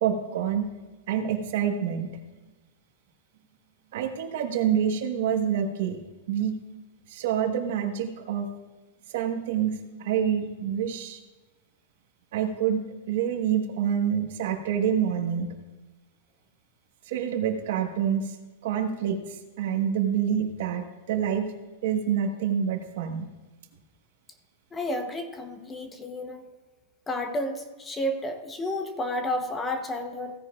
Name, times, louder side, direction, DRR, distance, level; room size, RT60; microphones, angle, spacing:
voice 1, 0.0-0.7 1.1-2.1 3.9-6.0 6.3-6.6 7.1-8.5 9.1-11.2 12.3-15.5 17.1-18.4 18.6-21.5 21.8-23.3, right 8 dB, 55° right, 5 dB, 1.2 m, -27 dB
voice 2, 24.7-26.5 27.1-30.3, left 1 dB, 10° left, 6 dB, 0.8 m, -31 dB
16.0 x 9.9 x 2.4 m, 1.2 s
supercardioid pair, 165°, 0 cm